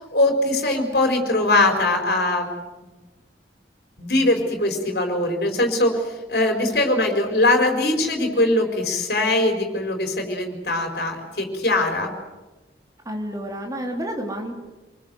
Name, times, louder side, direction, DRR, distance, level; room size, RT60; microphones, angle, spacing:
voice 1, 0.1-2.5 4.0-12.1, left 2 dB, 65° left, 4 dB, 4.8 m, -21 dB
voice 2, 13.1-14.5, equal, 20° right, 2 dB, 3.6 m, -30 dB
27.5 x 21.0 x 8.0 m, 1.2 s
head